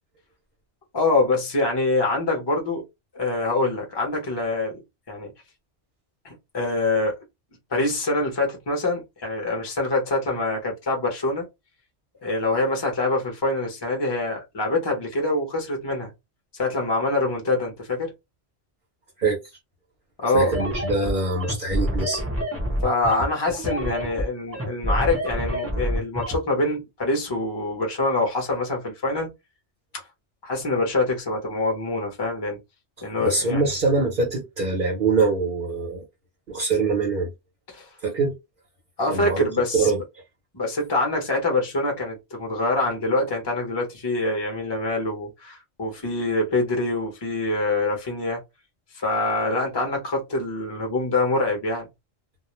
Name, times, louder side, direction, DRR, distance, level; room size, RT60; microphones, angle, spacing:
voice 1, 0.9-2.8 3.1-4.8 5.1-5.3 6.2-7.1 7.7-11.5 12.2-16.1 16.5-18.1 20.2-20.5 22.8-29.3 30.4-32.6 33.0-33.6 37.7-37.9 39.0-39.9 40.5-48.4 48.9-51.9, left 2 dB, 25° left, 0.8 m, -25 dB
voice 2, 20.3-22.2 33.2-36.0 36.5-37.3 38.0-38.4 39.1-39.5 39.7-40.0, right 3 dB, 50° right, 0.8 m, -23 dB
sound 1, 20.4-26.4, equal, 15° right, 0.8 m, -27 dB
2.3 x 2.0 x 3.0 m
omnidirectional pair, 1.2 m